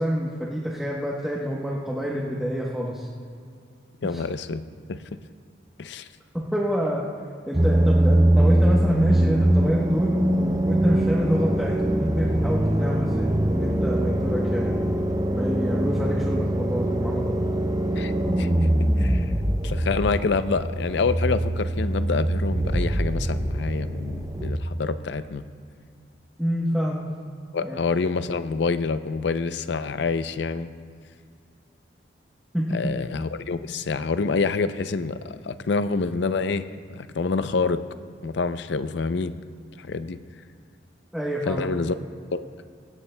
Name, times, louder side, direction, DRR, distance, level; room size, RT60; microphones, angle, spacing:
voice 1, 0.0-3.1 4.0-4.2 6.3-7.0 7.5-14.8 15.3-17.3 26.4-27.0 27.6-27.8 32.5-32.9 41.1-41.7, equal, ahead, -5 dB, 1.0 m, -27 dB
voice 2, 4.0-4.6 4.9-5.0 5.8-6.1 18.0-18.1 18.4-18.5 19.0-19.3 19.6-25.4 27.5-30.7 32.7-36.6 36.9-37.8 38.2-39.3 39.8-40.2 41.5-41.9 42.3-42.5, left 4 dB, 70° left, 12 dB, 0.5 m, -27 dB
sound 1, 7.5-24.5, right 1 dB, 20° right, 0.6 m, -23 dB
17.5 x 16.5 x 2.2 m, 2.3 s
head